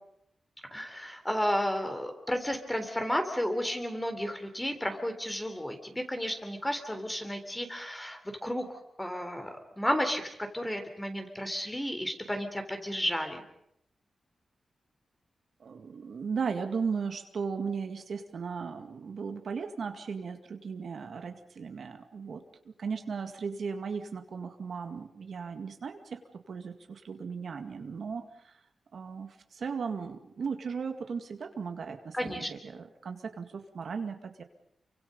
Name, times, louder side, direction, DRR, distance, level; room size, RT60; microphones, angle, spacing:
voice 1, 0.7-9.5 9.8-13.4 32.1-32.5, equal, 10° left, 6 dB, 3.4 m, -32 dB
voice 2, 15.6-28.5 28.9-34.4, right 5 dB, 70° right, 6 dB, 2.0 m, -36 dB
29.0 x 24.0 x 5.3 m, 0.76 s
wide cardioid pair, 95°, 0 cm